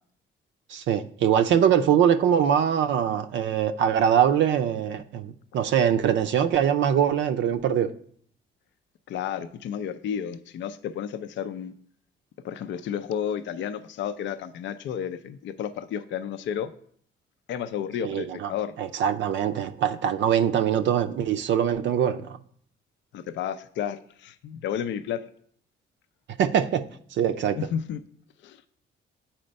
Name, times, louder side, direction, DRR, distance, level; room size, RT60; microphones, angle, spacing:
voice 1, 0.7-7.9 18.0-18.5 18.8-22.4 26.4-26.9 27.1-27.6, right 9 dB, 70° right, 9 dB, 0.5 m, -23 dB
voice 2, 9.1-11.7 12.4-16.7 17.5-18.7 23.1-25.3 27.5-28.0 28.4-28.6, left 8 dB, 65° left, 12 dB, 0.5 m, -32 dB
7.7 x 4.4 x 5.2 m, 0.62 s
cardioid pair, 90°, 20 cm